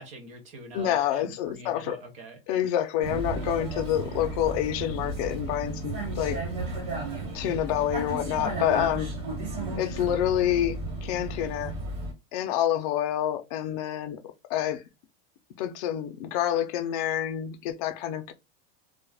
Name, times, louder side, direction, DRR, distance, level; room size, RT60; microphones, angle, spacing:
voice 1, 0.0-2.4 9.7-9.8, right 2 dB, 25° right, 0.7 m, -44 dB
voice 2, 0.7-2.0 2.5-6.4 7.3-9.1 9.7-11.7 12.3-14.2 14.5-14.8 15.6-18.3, left 11 dB, 40° left, 0.4 m, -28 dB
Vehicle, 3.0-12.1, right 2 dB, 50° right, 1.2 m, -34 dB
2.3 x 2.0 x 3.3 m
supercardioid pair, 170°, 29 cm